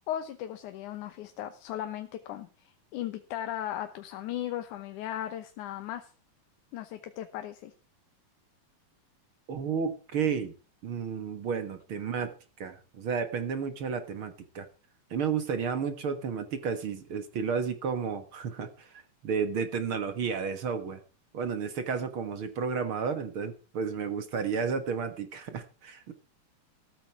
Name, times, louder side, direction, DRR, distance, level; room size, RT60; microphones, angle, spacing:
voice 1, 0.1-6.1 6.7-7.7, left 11 dB, 85° left, 8 dB, 2.5 m, -37 dB
voice 2, 9.5-10.5 10.8-14.7 15.1-21.0 21.3-26.1, right 6 dB, 50° right, 9 dB, 2.1 m, -32 dB
14.5 x 13.0 x 4.7 m, 0.35 s
omnidirectional pair, 3.4 m